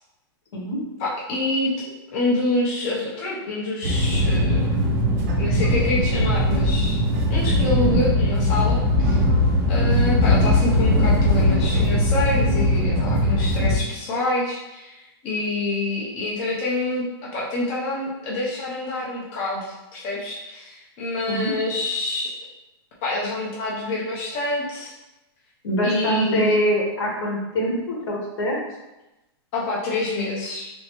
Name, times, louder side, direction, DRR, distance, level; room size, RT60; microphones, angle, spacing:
voice 1, 1.0-1.7 2.1-4.8 5.4-7.0 7.3-9.2 9.7-22.3 23.0-24.9 25.8-26.6 29.5-30.7, left 2 dB, 30° left, -5 dB, 0.6 m, -27 dB
sound 1, 3.8-13.8, left 1 dB, 40° right, 0.6 m, -20 dB
voice 2, 25.6-28.6, right 1 dB, 80° left, -2 dB, 1.2 m, -24 dB
3.2 x 2.7 x 2.9 m, 0.99 s
supercardioid pair, 170°, 13 cm